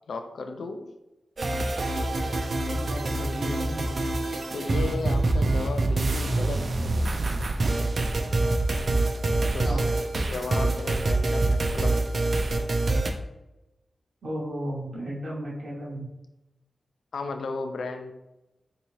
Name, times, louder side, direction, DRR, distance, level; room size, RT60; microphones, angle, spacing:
voice 1, 0.1-0.9 4.5-6.7 9.5-12.0 17.1-18.1, left 3 dB, 85° left, 6 dB, 0.4 m, -35 dB
sound 1, 1.4-13.1, right 2 dB, 45° right, 0.3 m, -25 dB
voice 2, 2.7-3.8 9.5-9.8 14.2-16.1, right 1 dB, 60° right, -5 dB, 0.8 m, -34 dB
3.5 x 2.8 x 3.0 m, 0.96 s
wide cardioid pair, 175°, 0 cm